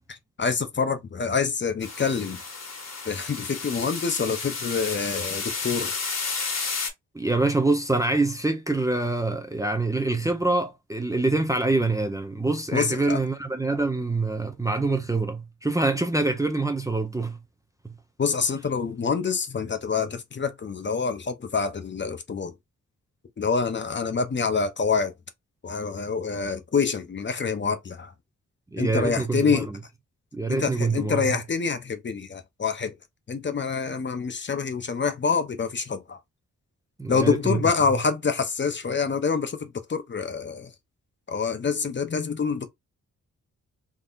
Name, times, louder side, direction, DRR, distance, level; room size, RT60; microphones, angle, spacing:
voice 1, 0.1-2.4 3.0-6.0 12.7-13.2 18.2-22.5 23.4-25.1 25.6-28.1 28.8-29.7 30.5-33.0 33.3-36.2 37.1-40.7 41.3-42.7, left 5 dB, 35° left, 0.7 m, -26 dB
sound 1, 1.8-6.9, left 4 dB, 55° left, 1.3 m, -32 dB
voice 2, 7.1-17.4 17.8-18.0 28.7-29.7 30.3-31.3 37.0-37.6, right 2 dB, 10° right, 0.5 m, -25 dB
3.7 x 2.8 x 2.4 m
cardioid pair, 100°, 32 cm